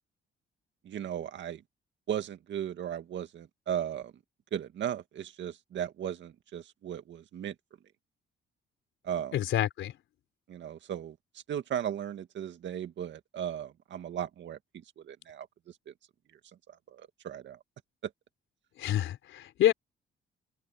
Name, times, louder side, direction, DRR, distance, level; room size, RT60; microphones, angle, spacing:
voice 1, 0.8-1.6 2.1-4.1 4.5-7.6 9.0-9.4 10.5-14.6 15.0-15.9 16.7-17.6 18.0-18.1, right 10 dB, 65° right, 2.0 m, -36 dB
voice 2, 9.3-9.9 18.8-19.7, left 12 dB, 80° left, 3.9 m, -27 dB
open air
cardioid pair, 90°, 20 cm